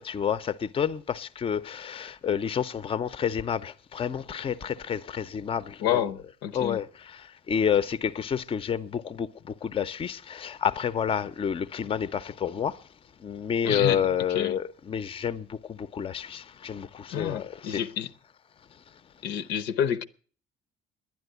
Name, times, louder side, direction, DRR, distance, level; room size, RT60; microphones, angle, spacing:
voice 1, 0.0-6.1 6.5-12.9 13.2-17.8, left 8 dB, 35° left, 0.6 m, -29 dB
voice 2, 5.8-6.8 13.6-14.0 14.3-14.6 17.1-18.1 19.2-20.0, left 9 dB, 90° left, 0.8 m, -29 dB
10.5 x 10.5 x 8.0 m
cardioid pair, 110°, 17 cm